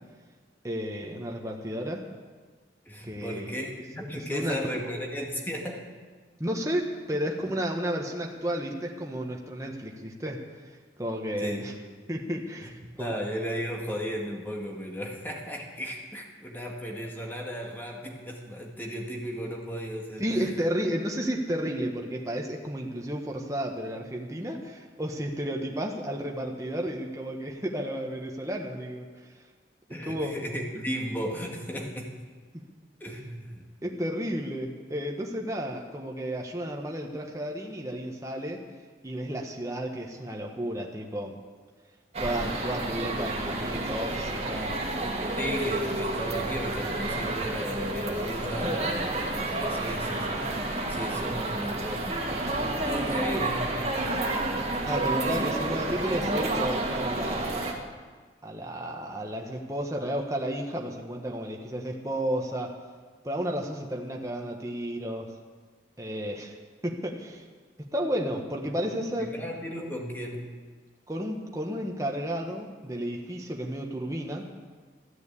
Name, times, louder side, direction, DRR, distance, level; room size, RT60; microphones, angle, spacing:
voice 1, 0.6-2.0 3.0-3.6 4.3-4.9 6.4-10.4 11.0-11.7 12.1-13.1 20.2-29.3 30.0-30.4 32.5-32.7 33.8-38.6 39.0-41.4 42.2-44.7 53.3-53.5 54.8-57.5 58.4-62.7 63.2-65.3 66.0-66.6 66.8-67.4 67.9-69.4 71.1-74.5, equal, 15° right, 0 dB, 1.5 m, -32 dB
voice 2, 2.9-5.9 11.4-11.7 12.6-12.7 13.0-20.5 29.9-32.1 33.0-33.7 45.4-50.6 50.9-52.2 52.8-54.0 69.2-70.6, equal, 10° left, 0 dB, 2.0 m, -35 dB
sound 1, 42.1-57.7, right 2 dB, 35° right, 2.1 m, -30 dB
14.5 x 10.5 x 8.6 m, 1.4 s
head